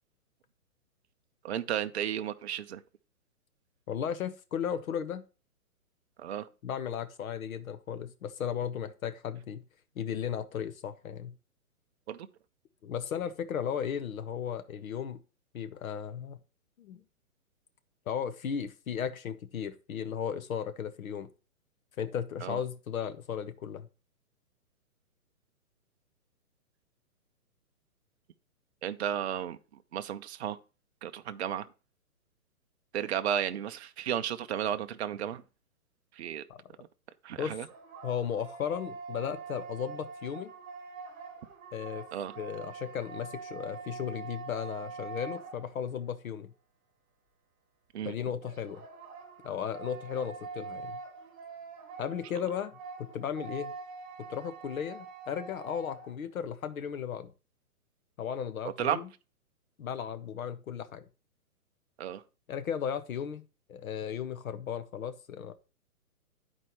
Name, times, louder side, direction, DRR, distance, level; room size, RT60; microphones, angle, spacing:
voice 1, 1.4-2.8 6.2-6.5 12.1-12.3 22.4-22.6 28.8-29.6 29.9-30.6 31.0-31.7 32.9-35.4 36.1-36.4 37.2-37.7 42.1-42.4 47.9-48.1 58.6-59.0 62.0-62.2, right 10 dB, 50° right, 0.5 m, -33 dB
voice 2, 3.9-5.2 6.6-9.6 10.0-11.3 12.8-15.2 15.5-16.4 16.8-17.0 18.1-21.3 22.0-23.9 36.5-36.6 37.4-37.5 38.0-40.5 41.7-42.1 42.4-46.5 48.0-48.8 49.4-51.0 52.0-53.7 54.3-57.3 58.2-59.1 59.8-61.0 62.5-63.4 63.7-65.5, left 8 dB, 65° left, 0.9 m, -35 dB
sound 1, 37.7-46.1 48.4-56.2, right 5 dB, 30° right, 1.8 m, -45 dB
11.0 x 4.3 x 2.9 m
hypercardioid pair, 155°, 45 cm